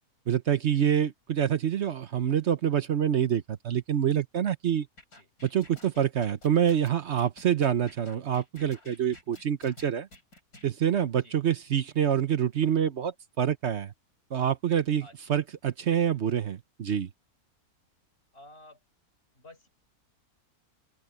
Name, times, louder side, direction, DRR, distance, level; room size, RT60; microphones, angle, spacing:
voice 1, 0.3-4.9 5.4-10.1 10.6-13.9 14.3-17.1, right 9 dB, 55° right, 1.0 m, -26 dB
sound 1, 5.0-10.7, left 2 dB, 75° left, 6.7 m, -52 dB
voice 2, 15.0-15.3 18.3-18.8 19.3-19.7, left 1 dB, 40° left, 7.2 m, -53 dB
open air
omnidirectional pair, 1.6 m